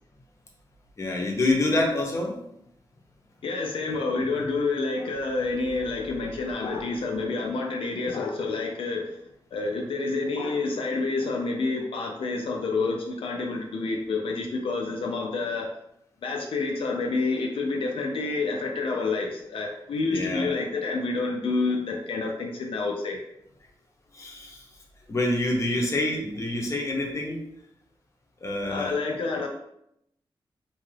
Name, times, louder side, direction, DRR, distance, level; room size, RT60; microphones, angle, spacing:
voice 1, 1.0-2.3 20.1-20.6 24.1-24.6 25.1-27.4 28.4-28.9, left 2 dB, 30° left, -1 dB, 0.7 m, -26 dB
voice 2, 3.4-9.0 9.5-15.7 16.2-23.2 28.7-29.5, left 3 dB, 80° left, 1 dB, 0.4 m, -28 dB
2.7 x 2.3 x 3.2 m, 0.76 s
wide cardioid pair, 115°, 9 cm